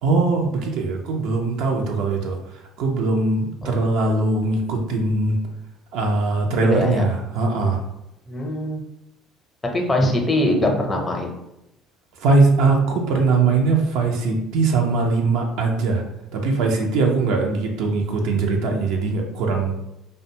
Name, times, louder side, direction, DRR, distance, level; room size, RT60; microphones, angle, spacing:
voice 1, 0.0-2.4 2.8-5.4 5.9-7.8 12.2-16.0 16.3-19.8, right 3 dB, 70° right, 2 dB, 0.5 m, -21 dB
voice 2, 6.7-7.0 8.3-8.8 9.7-11.3, left 1 dB, 25° left, 1 dB, 0.6 m, -22 dB
2.5 x 2.2 x 2.8 m, 0.88 s
hypercardioid pair, 65°, 0 cm